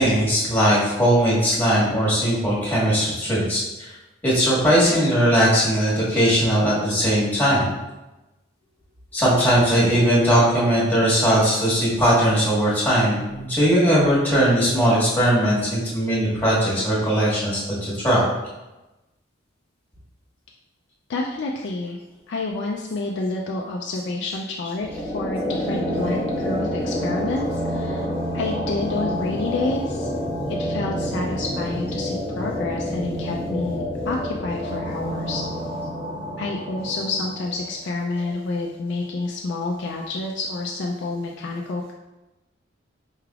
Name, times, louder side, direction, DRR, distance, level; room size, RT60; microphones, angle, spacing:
voice 1, 0.0-3.6 4.2-7.7 9.1-18.2 30.1-30.2, equal, 10° left, -8 dB, 1.3 m, -19 dB
voice 2, 21.1-22.0 22.3-28.1 28.3-30.1 30.6-35.4 36.4-41.9, left 2 dB, 60° left, 0 dB, 0.3 m, -29 dB
sound 1, 24.8-37.9, equal, 25° right, 1.2 m, -28 dB
4.6 x 3.3 x 2.4 m, 1.0 s
head